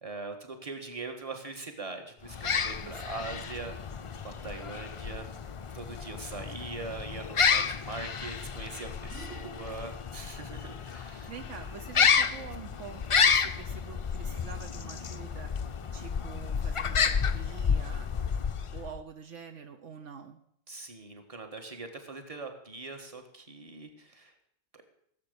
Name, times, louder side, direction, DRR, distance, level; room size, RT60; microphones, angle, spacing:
voice 1, 0.0-3.8 4.2-5.3 5.7-11.3 20.7-24.3 24.7-24.8, right 3 dB, 25° right, 5 dB, 1.6 m, -41 dB
sound 1, 2.2-19.0, left 6 dB, 50° left, 0.3 m, -30 dB
voice 2, 2.8-3.8 9.1-9.7 10.5-15.5 15.9-18.1 18.7-20.4, right 7 dB, 70° right, 7 dB, 1.2 m, -46 dB
16.0 x 7.6 x 6.9 m, 0.70 s
omnidirectional pair, 1.3 m